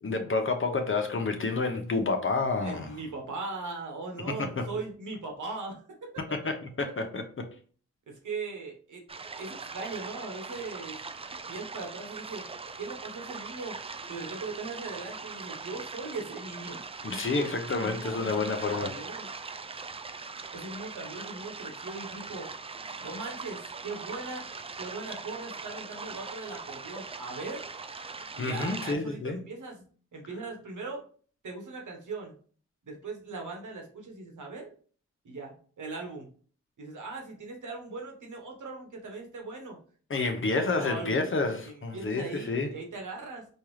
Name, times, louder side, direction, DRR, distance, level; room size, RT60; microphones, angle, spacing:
voice 1, 0.0-3.0 4.3-4.7 6.3-7.4 17.0-18.9 28.4-29.4 40.1-42.7, left 3 dB, 40° left, 0.8 m, -29 dB
voice 2, 2.6-6.1 8.1-9.0 9.4-11.0 11.5-12.5 12.8-13.8 14.1-16.8 17.7-19.3 20.5-22.5 23.0-24.4 24.8-27.7 28.3-29.9 30.1-31.0 31.4-32.3 32.8-34.7 35.2-36.3 36.8-39.8 40.6-41.3 41.6-43.5, right 3 dB, 70° right, 1.2 m, -39 dB
sound 1, 9.1-28.9, right 4 dB, 20° right, 0.3 m, -41 dB
4.4 x 2.4 x 3.1 m
cardioid pair, 50°, 31 cm